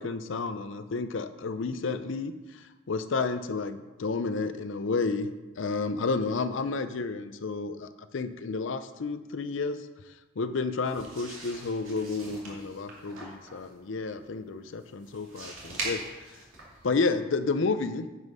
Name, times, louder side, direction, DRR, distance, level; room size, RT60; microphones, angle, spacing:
voice 1, 0.0-2.3 2.9-5.3 5.6-9.8 10.4-16.0 16.8-18.1, left 4 dB, 65° left, 11 dB, 0.5 m, -31 dB
sound 1, 10.8-17.0, right 2 dB, 90° right, 2.5 m, -42 dB
9.6 x 5.4 x 5.5 m, 1.2 s
head